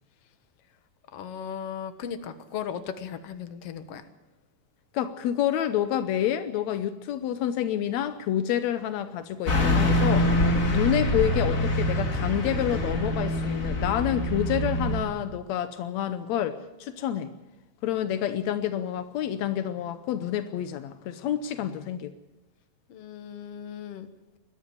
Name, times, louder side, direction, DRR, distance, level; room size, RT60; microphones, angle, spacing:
voice 1, 1.1-4.0 22.9-24.1, left 8 dB, 60° left, 10 dB, 1.7 m, -37 dB
voice 2, 4.9-10.4 10.7-17.3 17.8-22.1, left 10 dB, 90° left, 11 dB, 1.5 m, -28 dB
Car passing by / Truck, 9.4-15.0, left 1 dB, 25° left, 2.0 m, -25 dB
21.5 x 13.0 x 9.9 m, 1.0 s
omnidirectional pair, 4.4 m